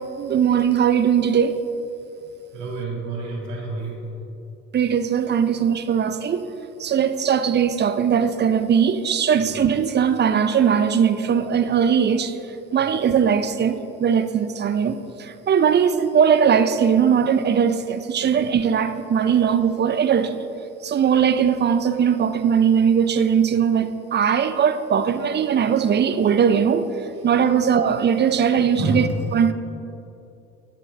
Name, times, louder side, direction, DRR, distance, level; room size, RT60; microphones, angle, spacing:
voice 1, 0.2-1.6 4.7-6.4 6.8-12.3 12.7-20.4 20.8-26.8 27.2-29.1 29.3-29.5, right 7 dB, 35° right, 0.4 m, -20 dB
voice 2, 2.5-4.0 18.2-18.3 19.2-19.4 27.5-27.6 28.8-29.0, right 3 dB, 80° right, 1.7 m, -28 dB
8.6 x 6.0 x 3.3 m
supercardioid pair, 60°, 30 cm